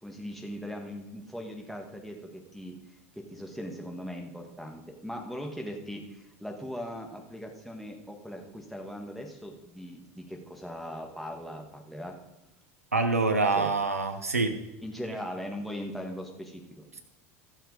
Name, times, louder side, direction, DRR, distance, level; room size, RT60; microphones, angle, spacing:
voice 1, 0.0-2.8 3.1-12.2 13.5-13.7 14.8-16.8, equal, ahead, 1 dB, 2.0 m, -39 dB
voice 2, 12.9-14.5, right 3 dB, 80° right, 6 dB, 1.2 m, -25 dB
13.5 x 6.7 x 5.1 m, 0.93 s
figure-of-eight pair, 75°, 8 cm